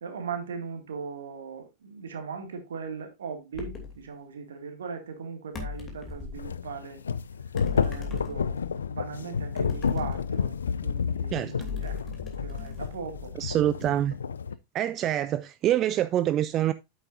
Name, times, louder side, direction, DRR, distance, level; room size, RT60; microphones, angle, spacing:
voice 1, 0.0-7.0 7.7-10.6 10.8-12.0 12.4-13.3, right 5 dB, 65° right, 2.1 m, -39 dB
sound 1, 3.5-4.0 5.5-6.5 7.6-8.8 9.6-10.9 11.6-13.5, left 5 dB, 25° left, 2.6 m, -38 dB
sound 2, 6.3-14.5, left 6 dB, 70° left, 0.4 m, -31 dB
voice 2, 11.3-11.7 13.4-14.1 14.7-16.7, right 12 dB, 30° right, 0.4 m, -26 dB
9.0 x 8.1 x 2.5 m
figure-of-eight pair, 90°, 0 cm